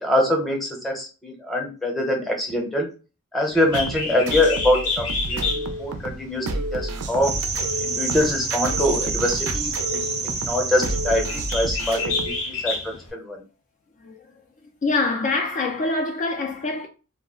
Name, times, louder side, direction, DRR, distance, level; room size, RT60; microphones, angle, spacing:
voice 1, 0.0-2.9 3.3-6.4 6.7-7.3 7.8-13.4, left 1 dB, ahead, 0.7 m, -24 dB
Bird, 3.5-13.1, left 4 dB, 75° left, 0.8 m, -31 dB
sound 1, 3.7-12.4, right 2 dB, 85° right, 0.4 m, -30 dB
sound 2, 7.2-12.2, right 4 dB, 30° right, 0.5 m, -28 dB
voice 2, 14.8-16.9, left 3 dB, 35° left, 0.3 m, -25 dB
2.3 x 2.0 x 3.6 m
head